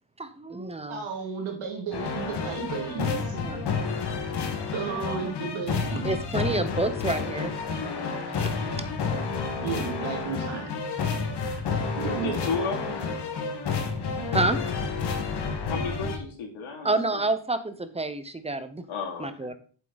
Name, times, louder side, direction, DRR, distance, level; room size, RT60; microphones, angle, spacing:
voice 1, 0.2-1.0 3.3-3.8 6.0-7.5 8.4-8.8 14.1-14.6 16.8-18.8 19.2-19.5, right 2 dB, 15° right, 11 dB, 0.8 m, -29 dB
voice 2, 0.9-3.4 4.7-6.1 9.6-10.7 12.0-12.4, right 6 dB, 80° right, 3 dB, 2.8 m, -33 dB
sound 1, 1.9-16.2, left 5 dB, 55° left, 1.9 m, -30 dB
voice 3, 12.2-13.0 15.7-17.2 18.9-19.5, left 4 dB, 85° left, 1 dB, 2.9 m, -33 dB
8.2 x 7.7 x 4.1 m, 0.42 s
wide cardioid pair, 145°, 47 cm